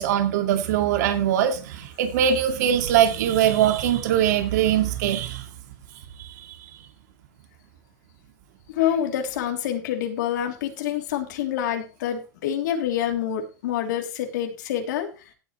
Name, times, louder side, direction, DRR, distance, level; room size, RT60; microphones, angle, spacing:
voice 1, 0.0-5.4 6.4-6.5, right 10 dB, 65° right, 6 dB, 2.2 m, -22 dB
voice 2, 8.8-15.1, left 10 dB, 80° left, 3 dB, 3.2 m, -27 dB
15.5 x 8.9 x 3.3 m, 0.33 s
supercardioid pair, 175°, 10 cm